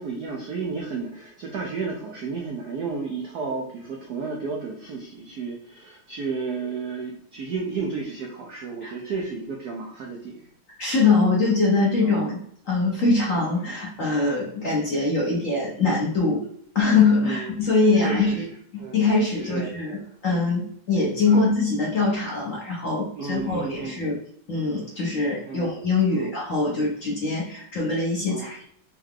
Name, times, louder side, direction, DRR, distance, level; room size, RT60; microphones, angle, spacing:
voice 1, 0.0-10.4 12.0-12.2 17.2-17.5 17.9-18.4 18.8-19.0 19.4-19.7 21.3-21.5 23.2-24.0 25.5-25.7 26.1-26.3 28.3-28.4, right 4 dB, 85° right, 0 dB, 0.8 m, -32 dB
voice 2, 10.8-12.4 12.7-16.4 16.7-18.4 18.7-24.2 24.5-28.6, left 3 dB, 50° left, -4 dB, 1.0 m, -23 dB
4.6 x 2.3 x 3.5 m, 0.64 s
omnidirectional pair, 2.4 m